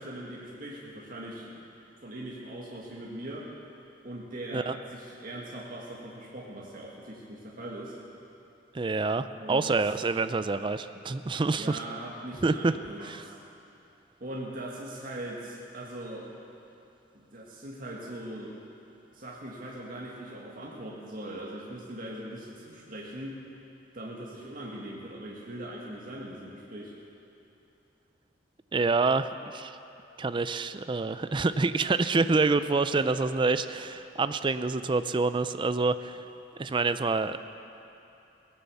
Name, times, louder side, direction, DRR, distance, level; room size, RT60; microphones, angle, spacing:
voice 1, 0.0-1.6 2.0-3.5 4.0-8.0 9.3-9.8 11.5-13.4 14.2-16.3 17.1-18.6 19.1-23.4 23.9-26.9 32.9-33.1, right 1 dB, 50° right, -4 dB, 1.9 m, -40 dB
voice 2, 8.7-11.8 12.4-12.7 13.0-13.3 28.7-29.8 30.2-36.2 36.6-37.4, right 3 dB, 25° right, 12 dB, 0.4 m, -27 dB
18.0 x 11.5 x 7.0 m, 2.8 s
head